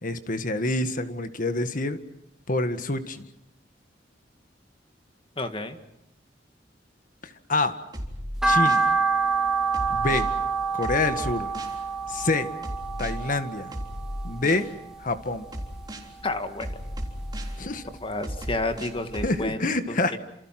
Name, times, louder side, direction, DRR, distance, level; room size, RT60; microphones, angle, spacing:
voice 1, 0.0-2.0 2.5-3.2 7.2-7.8 8.4-8.9 9.9-10.3 10.7-11.5 12.1-12.5 13.0-13.7 14.2-14.7 15.0-15.5 17.6-17.8 19.2-20.2, left 2 dB, 50° left, 9 dB, 1.8 m, -27 dB
voice 2, 5.4-5.8 16.2-16.7 18.0-19.6 19.9-20.2, left 2 dB, 30° left, 7 dB, 2.1 m, -30 dB
sound 1, 7.9-8.9 9.7-10.3 10.8-11.8 12.6-13.1 13.7-14.7 15.5-16.1 16.6-17.6 18.2-19.3, equal, 25° right, 3.7 m, -35 dB
sound 2, 8.4-14.7 15.1-16.2 16.6-18.0 18.4-18.5 18.9-19.0 19.3-19.4, right 4 dB, 5° right, 3.5 m, -27 dB
29.5 x 27.5 x 6.0 m, 0.80 s
head